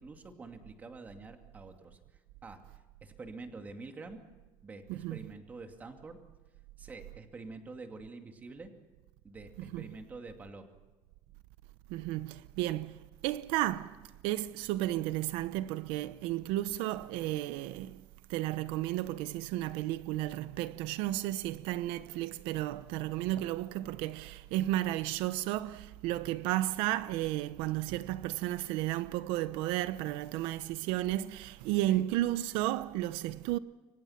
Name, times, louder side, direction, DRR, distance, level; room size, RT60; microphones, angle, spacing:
voice 1, 0.0-2.6 3.0-4.2 4.6-6.2 6.8-8.7 9.2-10.6 31.9-32.0, right 3 dB, 20° right, 2.4 m, -47 dB
voice 2, 11.9-13.9 14.2-18.0 18.3-33.6, right 15 dB, 85° right, 0.9 m, -33 dB
29.0 x 23.5 x 5.8 m
cardioid pair, 175°, 9 cm